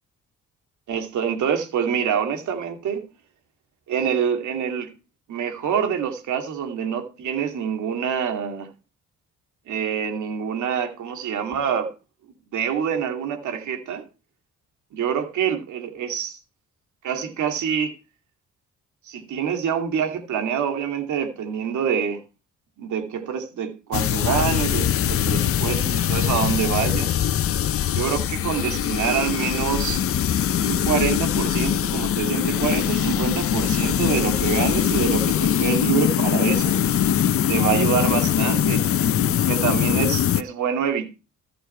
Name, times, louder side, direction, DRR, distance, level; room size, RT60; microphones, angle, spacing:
voice 1, 0.9-3.1 3.9-4.9 5.3-8.7 9.7-11.9 12.5-14.0 14.9-16.4 17.0-17.9 19.1-22.2 22.8-27.1 27.9-30.0 30.6-36.8 37.5-38.8 39.5-41.1, right 8 dB, 75° right, 2.5 m, -26 dB
sound 1, 23.9-40.4, left 10 dB, 50° left, 0.6 m, -22 dB
14.0 x 6.8 x 4.4 m
cardioid pair, 90°, 30 cm